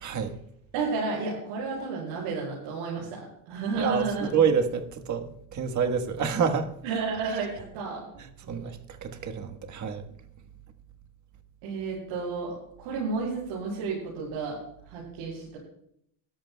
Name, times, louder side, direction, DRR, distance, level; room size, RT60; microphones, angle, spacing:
voice 1, 0.0-0.3 3.8-6.7 8.5-10.0, right 6 dB, 35° right, 1.5 m, -27 dB
voice 2, 0.7-4.3 6.8-8.1 11.6-14.6 14.9-15.6, right 4 dB, 75° right, 6.6 m, -32 dB
21.0 x 14.0 x 2.3 m
cardioid pair, 135°, 49 cm